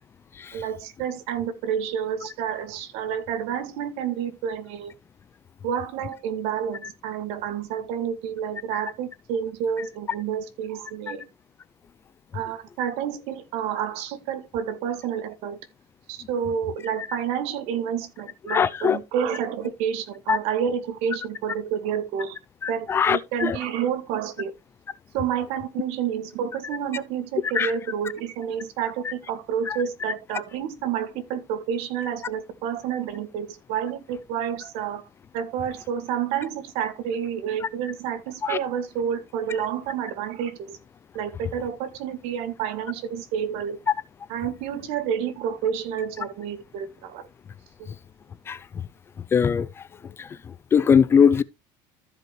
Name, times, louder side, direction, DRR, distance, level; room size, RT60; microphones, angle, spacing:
voice 1, 0.5-4.9 5.6-11.3 12.3-15.6 16.1-22.4 22.7-24.5 25.1-35.0 35.3-40.8 41.1-43.8 44.3-47.2 47.8-47.9, right 8 dB, 70° right, 1.8 m, -29 dB
voice 2, 18.5-19.0 20.3-20.4 22.6-23.6 27.6-27.7 29.7-29.8 38.4-38.6 48.5-48.6 49.3-49.7 50.2-50.3 50.7-51.4, left 7 dB, 20° left, 0.4 m, -20 dB
14.5 x 5.3 x 3.1 m
cardioid pair, 160°, 11 cm